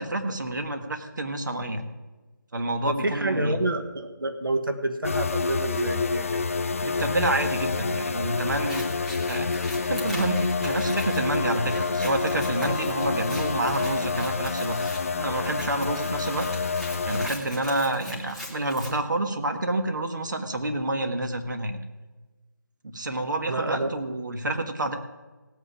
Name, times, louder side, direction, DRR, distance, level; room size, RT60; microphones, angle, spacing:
voice 1, 0.0-1.8 2.5-3.6 6.8-8.8 9.3-9.5 9.8-14.8 15.1-16.5 17.1-21.8 22.8-24.9, right 1 dB, 65° right, 5 dB, 1.7 m, -28 dB
voice 2, 2.9-6.2 23.5-23.9, right 2 dB, 85° right, 7 dB, 1.6 m, -28 dB
sound 1, 5.0-17.3, left 4 dB, 40° left, 0.4 m, -28 dB
Scissors, 8.5-18.9, left 1 dB, ahead, 0.9 m, -41 dB
17.5 x 8.5 x 4.9 m, 1.2 s
figure-of-eight pair, 160°, 11 cm